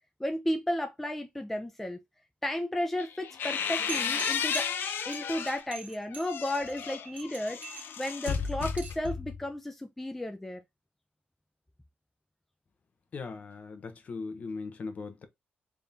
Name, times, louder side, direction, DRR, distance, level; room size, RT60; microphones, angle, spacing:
voice 1, 0.2-2.0 2.4-4.7 5.0-10.6, left 1 dB, 5° left, 0.4 m, -33 dB
sound 1, 3.0-5.7 6.1-9.5, left 7 dB, 70° left, 0.6 m, -33 dB
sound 2, 3.9-9.1, right 5 dB, 40° right, 1.7 m, -43 dB
voice 2, 13.1-15.3, left 4 dB, 40° left, 0.8 m, -39 dB
3.6 x 3.5 x 2.7 m
wide cardioid pair, 175°, 4 cm